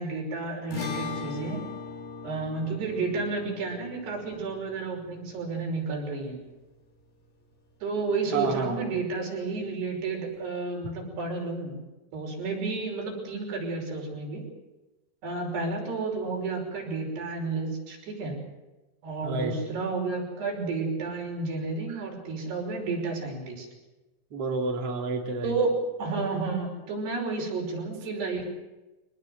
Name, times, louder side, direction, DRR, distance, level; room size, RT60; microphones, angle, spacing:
voice 1, 0.0-1.6 2.2-6.4 7.8-11.7 12.1-14.4 15.2-18.4 19.0-23.7 25.4-28.5, right 3 dB, 75° right, 0 dB, 7.8 m, -31 dB
sound 1, 0.7-7.2, left 5 dB, 65° left, 6.2 m, -40 dB
voice 2, 8.3-8.8 19.2-19.6 21.9-22.0 24.3-25.5, right 4 dB, 40° right, 0 dB, 3.5 m, -30 dB
25.0 x 19.5 x 7.8 m, 1.1 s
omnidirectional pair, 4.7 m